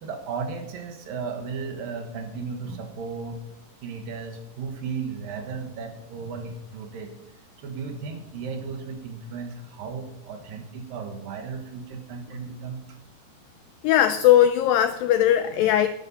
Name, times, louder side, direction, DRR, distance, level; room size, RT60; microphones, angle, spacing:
voice 1, 0.0-3.4 3.8-7.1 7.6-13.0, right 5 dB, 65° right, 6 dB, 2.8 m, -35 dB
voice 2, 13.8-15.9, left 11 dB, 90° left, 10 dB, 2.0 m, -19 dB
11.0 x 10.5 x 5.5 m, 0.81 s
omnidirectional pair, 4.7 m